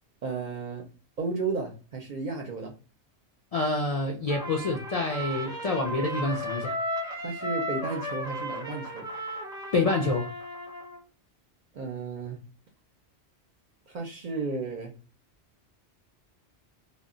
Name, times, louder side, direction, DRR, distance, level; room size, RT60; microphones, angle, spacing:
voice 1, 0.2-0.9 1.2-2.7 7.2-9.1 11.7-12.4 13.9-14.9, right 4 dB, 55° right, 2 dB, 0.5 m, -33 dB
voice 2, 3.5-6.8 9.7-10.3, left 2 dB, 65° left, 0 dB, 0.3 m, -27 dB
Trumpet, 4.3-11.0, equal, 5° right, 0.6 m, -35 dB
2.1 x 2.0 x 3.6 m, 0.36 s
omnidirectional pair, 1.2 m